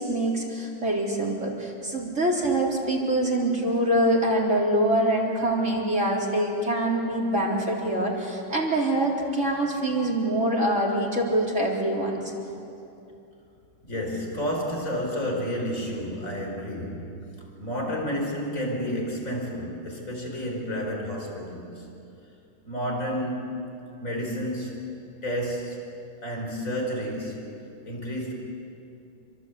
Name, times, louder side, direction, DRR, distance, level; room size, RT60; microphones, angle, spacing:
voice 1, 0.0-12.2, right 1 dB, 35° right, -3 dB, 4.0 m, -25 dB
voice 2, 13.8-17.3 17.6-21.9 22.6-23.7 24.0-25.0 25.2-25.8 26.2-27.5 27.9-28.3, equal, 40° left, 1 dB, 5.4 m, -31 dB
28.0 x 25.0 x 8.3 m, 2.7 s
omnidirectional pair, 2.1 m